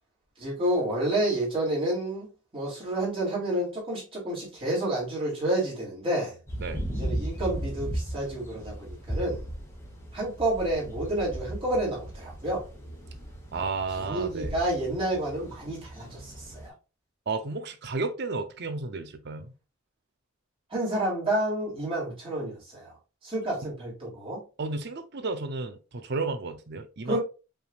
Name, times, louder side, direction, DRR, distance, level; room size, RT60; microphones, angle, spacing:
voice 1, 0.4-2.3 2.5-6.4 6.9-9.4 10.1-12.7 14.0-16.7 20.7-22.9 23.2-24.4 27.0-27.2, right 1 dB, 25° right, 2.4 m, -29 dB
sound 1, 6.5-16.7, right 1 dB, 10° left, 1.1 m, -37 dB
voice 2, 13.5-14.6 17.3-19.5 24.6-27.2, right 3 dB, 50° right, 0.6 m, -32 dB
5.4 x 3.4 x 2.4 m
head